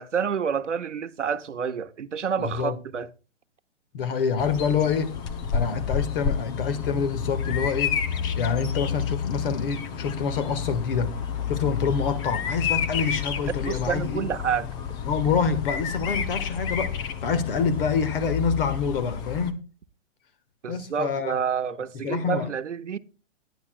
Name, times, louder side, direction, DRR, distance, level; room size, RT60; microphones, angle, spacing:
voice 1, 0.0-3.1 13.7-14.6 20.6-23.0, right 7 dB, 75° right, 1.0 m, -28 dB
voice 2, 2.4-2.8 3.9-5.2 5.5-8.0 8.4-11.2 11.5-14.3 15.0-19.6 20.7-21.4 22.0-22.6, left 6 dB, 50° left, 1.8 m, -27 dB
Bird vocalization bird call bird song, 4.4-19.5, left 7 dB, 10° left, 0.4 m, -30 dB
18.5 x 10.5 x 2.3 m
figure-of-eight pair, 120°, 36 cm